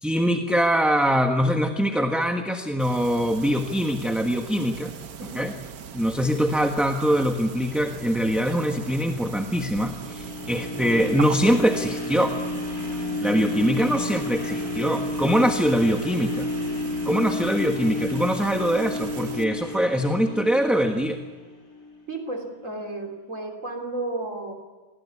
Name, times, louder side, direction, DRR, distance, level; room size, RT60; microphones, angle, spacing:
voice 1, 0.0-4.9 5.3-5.5 5.9-12.4 13.2-16.5 17.0-21.2, equal, ahead, 4 dB, 1.2 m, -23 dB
sound 1, 2.8-19.4, right 7 dB, 85° right, 1.6 m, -40 dB
sound 2, 9.9-22.0 22.5-22.6, left 2 dB, 80° left, 4.2 m, -31 dB
voice 2, 22.1-24.5, right 2 dB, 60° right, 3 dB, 3.6 m, -33 dB
26.0 x 19.5 x 9.8 m, 1.3 s
omnidirectional pair, 1.5 m